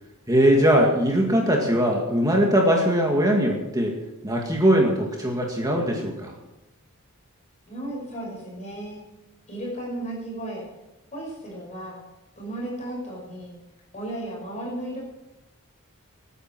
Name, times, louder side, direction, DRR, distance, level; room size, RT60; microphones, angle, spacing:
voice 1, 0.3-4.0 4.2-6.3, equal, 15° right, 0 dB, 2.2 m, -21 dB
voice 2, 7.7-9.0 9.5-10.6 11.1-12.0 12.4-13.5 13.9-15.0, right 1 dB, 35° left, -3 dB, 5.6 m, -34 dB
20.5 x 9.9 x 6.2 m, 0.99 s
head